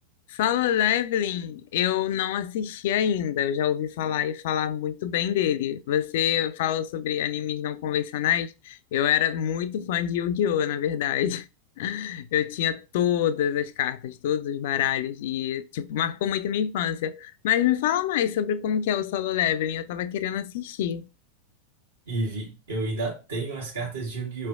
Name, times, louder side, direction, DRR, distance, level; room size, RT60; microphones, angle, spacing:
voice 1, 0.3-11.5 11.8-21.0, left 10 dB, 55° left, 0.3 m, -26 dB
voice 2, 22.1-24.5, right 3 dB, 70° right, 1.2 m, -31 dB
4.4 x 3.2 x 2.4 m
figure-of-eight pair, 90°, 0 cm